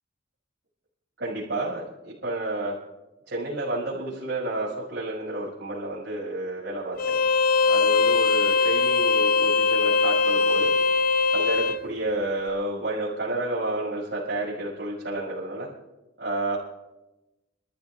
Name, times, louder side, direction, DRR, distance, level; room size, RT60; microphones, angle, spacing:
voice 1, 1.2-2.7 3.3-7.2 7.7-10.7 11.3-15.7 16.2-16.6, right 2 dB, 65° right, -9 dB, 6.6 m, -30 dB
Bowed string instrument, 7.0-11.8, left 4 dB, 50° left, 0.9 m, -21 dB
28.5 x 14.5 x 2.6 m, 1.0 s
head